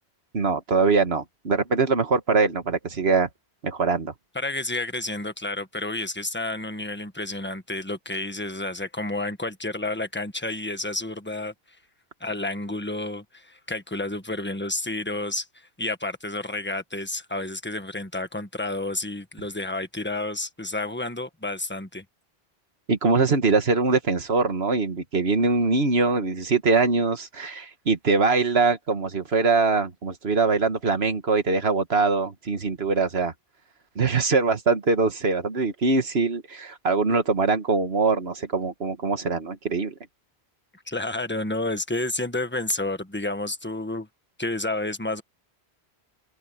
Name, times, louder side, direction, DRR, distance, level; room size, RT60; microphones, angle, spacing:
voice 1, 0.3-3.3 3.6-4.1 22.9-33.3 34.0-39.9, right 4 dB, 70° right, 1.8 m, -23 dB
voice 2, 4.3-11.5 12.2-22.0 40.7-44.1 44.4-45.2, left 2 dB, 10° left, 1.4 m, -30 dB
open air
omnidirectional pair, 1.1 m